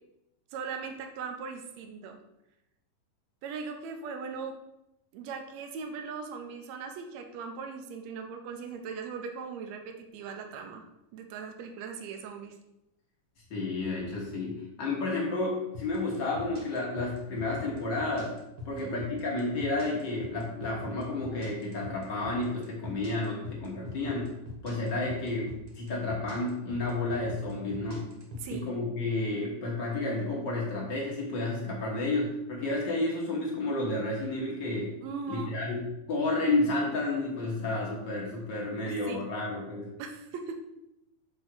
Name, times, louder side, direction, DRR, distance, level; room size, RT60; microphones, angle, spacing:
voice 1, 0.5-2.2 3.4-4.5 5.1-10.8 11.1-12.5 18.7-19.0 28.4-28.6 35.0-35.5 38.9-39.2 40.0-40.6, right 5 dB, 75° right, 5 dB, 1.6 m, -39 dB
voice 2, 13.5-18.3 18.6-24.3 24.6-28.1 28.5-35.0 35.3-39.9, left 2 dB, 55° left, -3 dB, 1.3 m, -31 dB
sound 1, 15.7-28.5, left 3 dB, 50° right, 1.5 m, -41 dB
6.2 x 3.6 x 6.2 m, 0.89 s
omnidirectional pair, 3.9 m